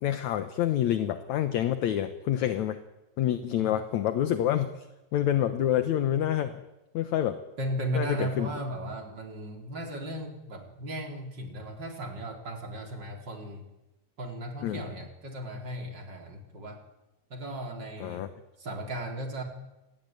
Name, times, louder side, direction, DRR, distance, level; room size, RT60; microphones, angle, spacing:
voice 1, 0.0-2.8 3.2-4.7 5.1-6.6 6.9-7.4 7.9-8.5 14.6-14.8 18.0-18.3, left 11 dB, 65° left, 10 dB, 2.1 m, -27 dB
voice 2, 7.6-13.6 14.2-16.8 17.3-18.3 18.6-19.4, right 1 dB, 30° right, 4 dB, 4.3 m, -36 dB
29.0 x 19.5 x 9.3 m, 0.99 s
omnidirectional pair, 4.2 m